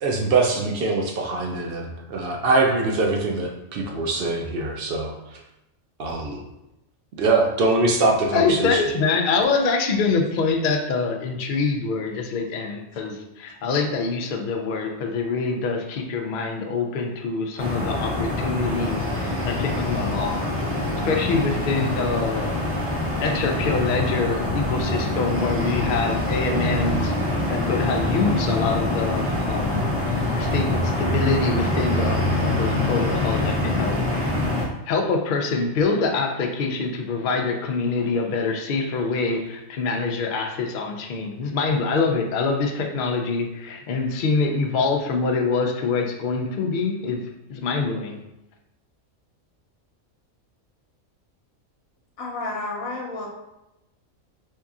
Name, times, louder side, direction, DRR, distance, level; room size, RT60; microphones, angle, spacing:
voice 1, 0.0-5.4 6.0-6.4 7.2-8.8, right 3 dB, 65° right, 1 dB, 0.6 m, -23 dB
voice 2, 8.3-22.5 23.2-34.3 34.9-47.2 47.5-48.2, left 4 dB, 70° left, 2 dB, 0.4 m, -25 dB
sound 1, 17.6-34.7, left 1 dB, 15° right, 0.6 m, -25 dB
voice 3, 52.2-53.3, left 2 dB, 90° left, -1 dB, 1.1 m, -30 dB
4.5 x 2.7 x 2.4 m, 0.91 s
omnidirectional pair, 1.4 m